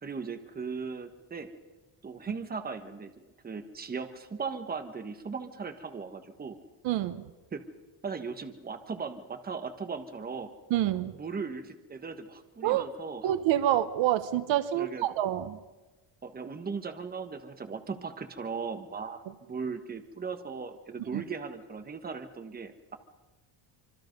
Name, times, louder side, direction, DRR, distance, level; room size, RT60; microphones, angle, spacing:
voice 1, 0.0-1.5 2.0-3.1 3.4-6.6 7.5-7.6 8.0-10.5 11.2-13.3 14.7-15.1 16.2-19.2 19.5-23.0, right 5 dB, 20° right, 8 dB, 1.3 m, -38 dB
voice 2, 6.8-7.3 10.7-11.2 12.6-12.9 13.2-15.6 21.1-21.2, right 12 dB, 80° right, 13 dB, 1.3 m, -27 dB
25.5 x 25.5 x 5.3 m, 1.2 s
cardioid pair, 150°, 45 cm